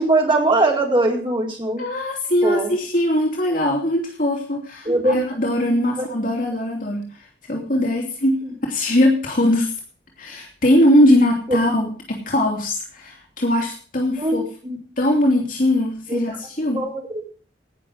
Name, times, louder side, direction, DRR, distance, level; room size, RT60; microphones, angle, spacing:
voice 1, 0.0-1.8 2.4-2.7 4.9-5.2 6.0-6.1 8.4-8.5 11.5-11.6 14.2-14.4 14.6-14.8 16.1-16.2 16.7-17.0, right 2 dB, 30° right, 0 dB, 4.3 m, -20 dB
voice 2, 1.8-9.8 10.2-14.4 15.0-16.8, left 1 dB, 50° left, 0 dB, 2.9 m, -20 dB
18.5 x 6.9 x 6.4 m, 0.42 s
head